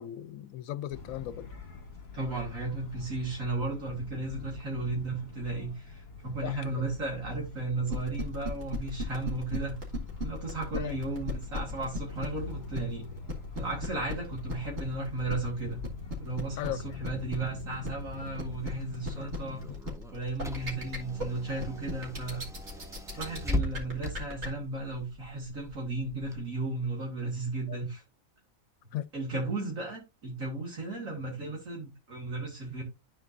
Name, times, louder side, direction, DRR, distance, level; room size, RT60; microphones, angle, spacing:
voice 1, 0.0-1.5 6.4-6.8 10.7-11.0 16.6-17.0 27.7-27.8 28.9-29.1 29.3-29.4, left 13 dB, 75° left, 1.0 m, -37 dB
sound 1, 0.9-19.8, left 4 dB, 50° left, 1.6 m, -45 dB
voice 2, 2.1-9.8 10.2-13.1 13.5-15.8 16.2-19.6 20.1-22.4 23.1-28.0 29.1-32.8, right 2 dB, 70° right, 2.6 m, -35 dB
sound 2, 7.9-24.5, left 1 dB, 50° right, 2.3 m, -36 dB
Car / Engine, 18.1-26.4, left 1 dB, 5° right, 0.4 m, -40 dB
12.5 x 4.4 x 2.5 m
omnidirectional pair, 1.5 m